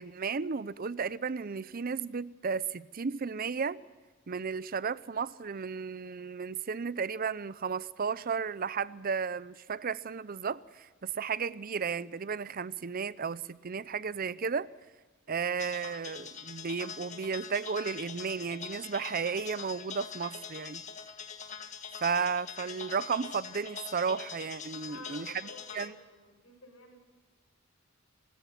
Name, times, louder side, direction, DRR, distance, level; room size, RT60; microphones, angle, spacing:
voice 1, 0.0-3.8 4.3-14.7 15.3-20.8 22.0-25.3 25.7-25.9, right 5 dB, 45° right, 0.6 m, -34 dB
sound 1, 15.6-25.9, left 6 dB, 35° left, 1.6 m, -43 dB
voice 2, 24.7-27.0, left 2 dB, 80° left, 7.8 m, -52 dB
24.5 x 20.0 x 5.9 m
head